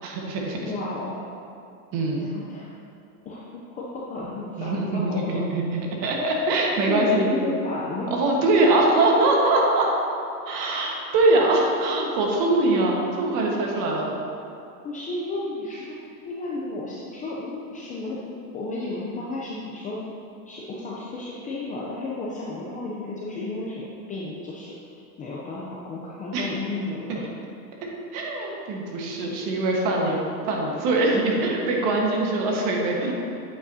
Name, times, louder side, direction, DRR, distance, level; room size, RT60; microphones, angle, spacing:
voice 1, 0.0-0.7 1.9-2.3 4.6-7.3 8.1-9.9 10.5-14.1 26.3-26.5 28.1-30.2 30.5-33.1, right 2 dB, 40° right, -1 dB, 1.4 m, -23 dB
voice 2, 0.6-1.3 2.1-2.7 3.3-5.4 6.8-8.1 14.8-20.0 20.5-27.2, left 2 dB, 15° left, -5 dB, 0.4 m, -33 dB
8.5 x 8.2 x 2.7 m, 2.6 s
supercardioid pair, 145°, 49 cm